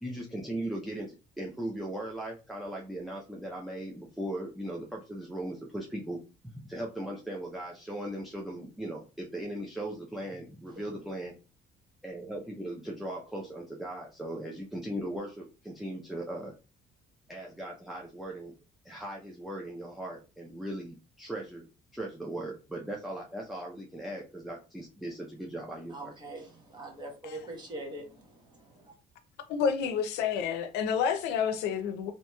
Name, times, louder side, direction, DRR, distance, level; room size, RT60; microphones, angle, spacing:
voice 1, 0.0-6.2 6.4-11.3 12.0-16.5 17.3-18.5 18.8-26.1, right 1 dB, ahead, 0.5 m, -38 dB
voice 2, 25.9-28.9, right 1 dB, 25° right, 1.1 m, -43 dB
voice 3, 29.5-32.1, left 7 dB, 85° left, 0.5 m, -29 dB
2.8 x 2.7 x 2.2 m
cardioid pair, 110°, 17 cm